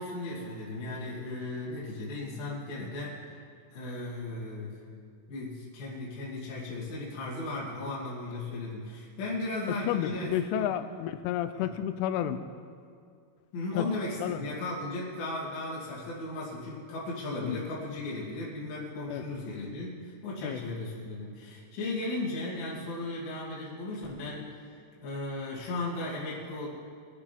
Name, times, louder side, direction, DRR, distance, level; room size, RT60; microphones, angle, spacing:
voice 1, 0.0-3.2 3.7-4.8 5.3-10.7 11.5-11.7 13.5-24.6 25.0-26.7, left 2 dB, 50° left, -7 dB, 3.9 m, -36 dB
voice 2, 9.9-12.4 13.8-13.9 14.2-14.4 17.4-17.6 19.1-19.3 20.4-20.6, left 11 dB, 85° left, 11 dB, 2.9 m, -31 dB
23.5 x 10.5 x 3.5 m, 2.3 s
omnidirectional pair, 6.0 m